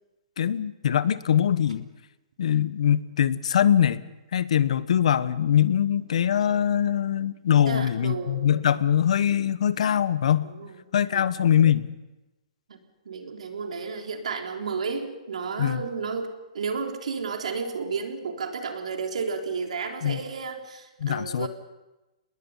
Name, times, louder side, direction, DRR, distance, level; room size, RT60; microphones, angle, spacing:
voice 1, 0.4-1.8 2.4-4.0 4.3-10.5 10.9-11.9 15.6-15.8 20.0-20.2 21.0-21.5, left 9 dB, 70° left, 16 dB, 1.0 m, -22 dB
voice 2, 7.7-8.4 10.4-10.8 11.1-11.2 12.7-12.8 13.1-16.3 16.5-21.5, right 5 dB, 85° right, 3 dB, 3.7 m, -32 dB
27.0 x 20.5 x 5.6 m, 1.0 s
hypercardioid pair, 155°, 4 cm